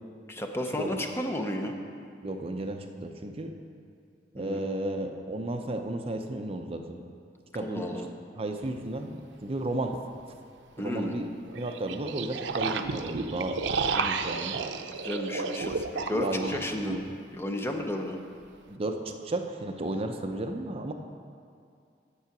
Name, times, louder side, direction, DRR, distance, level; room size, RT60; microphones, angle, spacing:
voice 1, 0.3-1.8 4.4-4.6 7.6-8.1 10.8-11.2 15.0-17.0 17.3-18.2, left 1 dB, 15° left, 3 dB, 0.7 m, -33 dB
voice 2, 2.2-3.5 4.3-7.0 7.5-8.0 8.4-10.0 10.8-14.6 16.2-16.5 16.8-17.1 18.7-20.9, right 1 dB, 35° right, 5 dB, 0.5 m, -33 dB
sound 1, 8.6-8.7 11.5-17.0, right 4 dB, 90° right, 0.5 m, -32 dB
8.4 x 7.6 x 5.9 m, 2.3 s
head